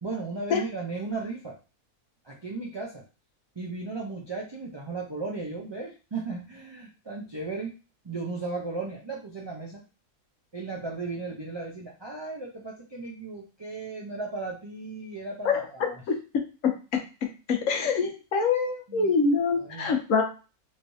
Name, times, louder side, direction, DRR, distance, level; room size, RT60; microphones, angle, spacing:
voice 1, 0.0-1.6 2.2-3.0 3.6-7.7 8.0-9.8 10.5-16.0 18.9-19.1 19.5-19.9, right 3 dB, 40° right, -2 dB, 0.3 m, -35 dB
voice 2, 16.1-16.7 17.5-20.2, left 5 dB, 70° left, 3 dB, 1.1 m, -25 dB
3.3 x 3.2 x 2.7 m, 0.32 s
omnidirectional pair, 1.5 m